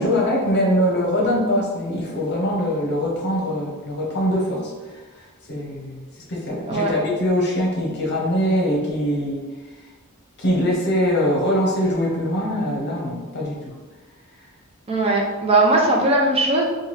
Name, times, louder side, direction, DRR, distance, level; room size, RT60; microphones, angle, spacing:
voice 1, 0.0-9.4 10.4-13.7, equal, 50° left, -2 dB, 0.8 m, -23 dB
voice 2, 14.9-16.6, right 2 dB, 25° right, -1 dB, 0.4 m, -19 dB
3.2 x 2.3 x 3.1 m, 1.3 s
head